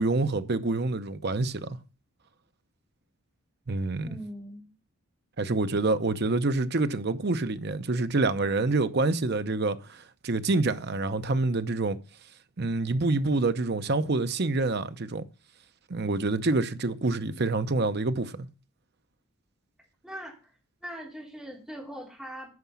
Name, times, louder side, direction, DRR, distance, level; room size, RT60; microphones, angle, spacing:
voice 1, 0.0-1.8 3.7-4.1 5.4-12.0 12.6-15.2 15.9-18.5, right 3 dB, 45° right, 0.7 m, -27 dB
voice 2, 4.0-4.7 20.0-20.5 20.8-22.5, equal, ahead, 3.3 m, -41 dB
9.6 x 5.9 x 7.1 m
head